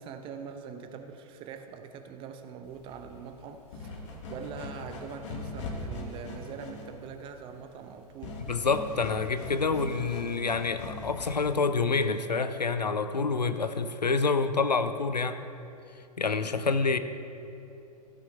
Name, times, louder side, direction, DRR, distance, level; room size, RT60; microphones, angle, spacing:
voice 1, 0.0-4.0 4.3-8.4, right 6 dB, 25° right, 7 dB, 0.7 m, -43 dB
sound 1, 2.6-11.6, left 2 dB, 50° left, 1.5 m, -41 dB
voice 2, 8.5-15.4 16.2-17.0, left 4 dB, 80° left, 11 dB, 0.6 m, -27 dB
15.0 x 5.7 x 5.2 m, 2.8 s
figure-of-eight pair, 100°, 21 cm